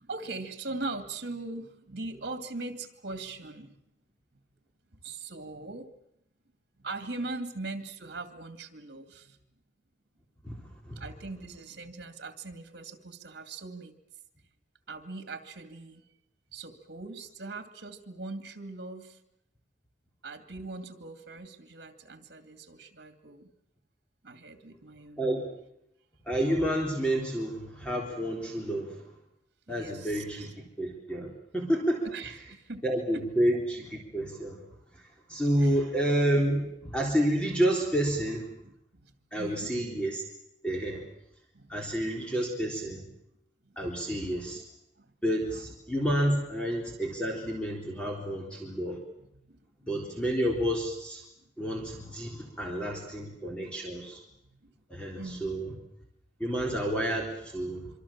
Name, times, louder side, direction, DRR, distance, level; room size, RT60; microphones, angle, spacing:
voice 1, 0.0-3.8 5.0-5.9 6.8-9.4 11.0-14.0 14.9-16.0 16.5-19.2 20.2-23.5 24.2-25.2 29.7-30.5 32.0-32.8 33.1-33.2 35.6-35.8 38.6-39.7 41.5-42.3 42.8-42.9 43.6-44.2 44.5-44.6 45.0-45.1 47.9-48.0 49.4-49.6 50.0-50.3 53.0-53.1 53.6-53.7 54.5-54.7 55.2-55.5 55.8-55.9, right 3 dB, 60° right, 7 dB, 2.4 m, -41 dB
voice 2, 10.4-11.1 25.2-25.5 26.3-29.1 29.7-30.5 30.8-32.1 32.8-34.6 34.9-35.0 35.3-38.5 39.3-40.2 40.6-41.0 41.7-43.0 43.8-44.6 45.2-49.0 49.9-51.2 51.6-54.2 54.9-55.7 56.4-57.9, right 1 dB, 5° left, -1 dB, 3.7 m, -29 dB
26.0 x 24.5 x 7.4 m, 0.82 s
head